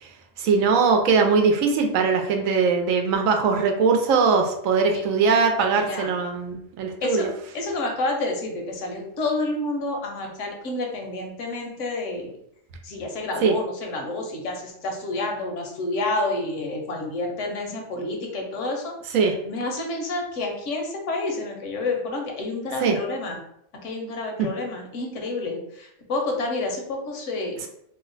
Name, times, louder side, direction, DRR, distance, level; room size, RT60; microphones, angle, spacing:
voice 1, 0.4-7.3 13.4-13.5 19.1-19.3 22.8-23.0 24.4-24.5, right 5 dB, 85° right, 4 dB, 1.0 m, -21 dB
voice 2, 5.8-6.1 7.0-7.3 7.5-12.3 12.8-19.2 19.4-23.4 23.8-27.6, left 2 dB, 70° left, 2 dB, 1.0 m, -29 dB
2.8 x 2.1 x 3.8 m, 0.74 s
omnidirectional pair, 1.3 m